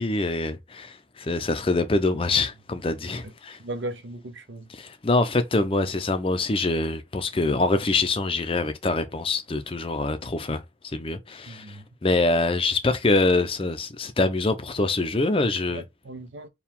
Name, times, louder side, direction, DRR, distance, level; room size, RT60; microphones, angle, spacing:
voice 1, 0.0-3.6 4.7-15.8, left 2 dB, 30° left, 0.5 m, -25 dB
voice 2, 3.6-4.7 11.5-11.8 15.7-16.5, right 2 dB, 80° right, 0.7 m, -37 dB
4.6 x 2.3 x 3.5 m
head